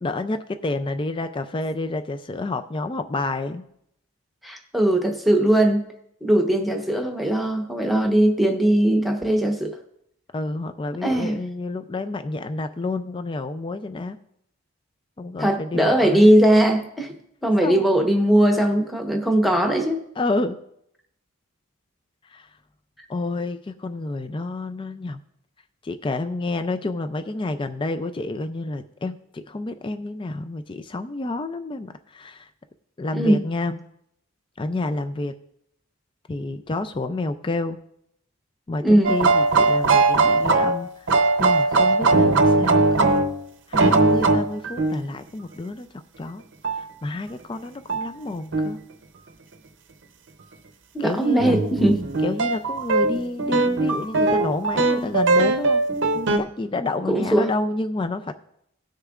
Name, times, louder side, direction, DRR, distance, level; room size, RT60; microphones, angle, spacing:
voice 1, 0.0-3.7 10.3-14.2 15.2-16.3 17.6-17.9 20.2-20.6 22.3-22.5 23.1-25.2 25.8-32.5 33.0-33.8 34.6-35.3 36.3-37.8 38.7-43.1 43.7-45.9 46.2-46.4 46.7-48.8 51.0-51.6 52.2-55.8 56.4-58.3, left 2 dB, 20° left, 9 dB, 0.3 m, -29 dB
voice 2, 4.4-5.8 6.2-9.8 11.0-11.4 15.4-17.1 17.4-20.0 33.1-33.4 38.8-39.1 50.9-52.0 57.0-57.5, right 1 dB, ahead, 3 dB, 0.9 m, -19 dB
sound 1, 39.0-43.4 43.7-45.0 46.6-46.8 47.9-48.1 48.5-48.7 51.0-56.4, right 3 dB, 55° right, 0.7 m, -20 dB
18.0 x 6.5 x 2.4 m, 0.76 s
head